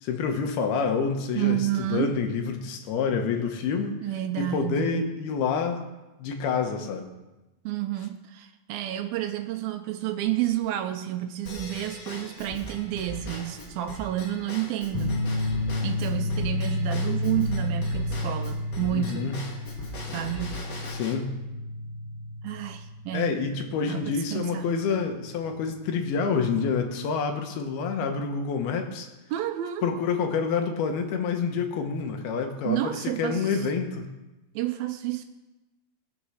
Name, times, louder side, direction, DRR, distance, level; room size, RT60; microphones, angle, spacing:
voice 1, 0.0-4.0 4.4-5.9 6.2-7.1 18.9-19.4 20.9-21.3 23.1-29.1 29.8-34.1, left 5 dB, 75° left, 5 dB, 3.1 m, -28 dB
voice 2, 1.4-2.2 4.0-5.2 7.7-19.3 20.1-20.6 20.9-21.0 22.4-23.4 23.9-24.7 29.3-29.9 32.7-33.6 34.6-35.3, right 13 dB, 80° right, 7 dB, 2.3 m, -30 dB
Drum kit / Drum / Bell, 11.4-21.1, left 1 dB, 50° left, 1.3 m, -40 dB
sound 1, 14.9-26.1, left 2 dB, 30° left, 6.0 m, -31 dB
19.5 x 7.1 x 6.4 m, 1.1 s
omnidirectional pair, 4.6 m